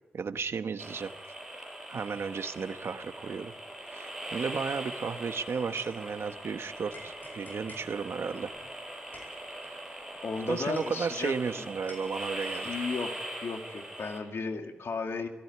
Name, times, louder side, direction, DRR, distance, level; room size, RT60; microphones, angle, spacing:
voice 1, 0.1-1.1 1.9-3.5 3.9-8.5 10.5-12.8, right 5 dB, 75° right, 9 dB, 1.1 m, -34 dB
sound 1, 0.8-14.2, right 1 dB, 5° right, 6.5 m, -41 dB
sound 2, 5.1-6.5 6.9-11.5 11.9-13.0, left 1 dB, 45° left, 7.6 m, -53 dB
voice 2, 10.2-11.7 12.7-13.1 13.4-15.3, left 4 dB, 75° left, 4 dB, 2.2 m, -34 dB
18.0 x 15.5 x 9.6 m, 1.2 s
wide cardioid pair, 90°, 4 cm